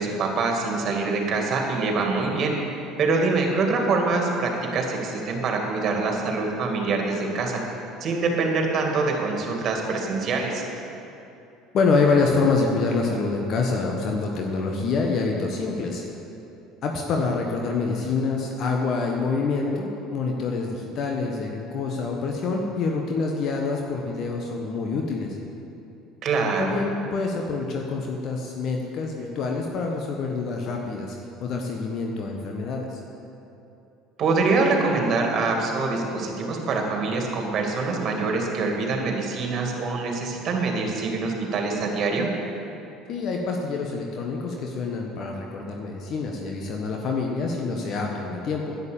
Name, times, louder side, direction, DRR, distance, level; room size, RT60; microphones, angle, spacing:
voice 1, 0.0-2.5 3.0-7.6 8.0-10.6 26.2-26.8 34.2-42.3, right 3 dB, 45° right, 1 dB, 2.4 m, -24 dB
voice 2, 11.7-16.0 16.8-25.4 26.6-33.0 43.1-48.7, left 4 dB, 50° left, 1 dB, 1.3 m, -26 dB
11.0 x 9.7 x 7.1 m, 2.8 s
hypercardioid pair, 65°, 0 cm